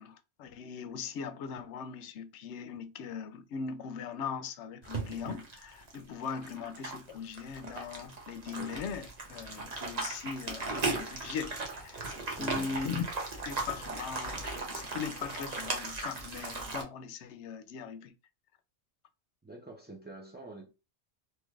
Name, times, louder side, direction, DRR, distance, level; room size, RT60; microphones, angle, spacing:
voice 1, 0.0-13.0 13.3-18.1, left 6 dB, 80° left, 0.9 m, -40 dB
sound 1, 4.8-16.8, right 3 dB, 40° right, 0.8 m, -37 dB
voice 2, 12.4-12.8 19.4-20.7, right 2 dB, 15° right, 0.3 m, -46 dB
3.2 x 3.0 x 2.3 m
omnidirectional pair, 1.2 m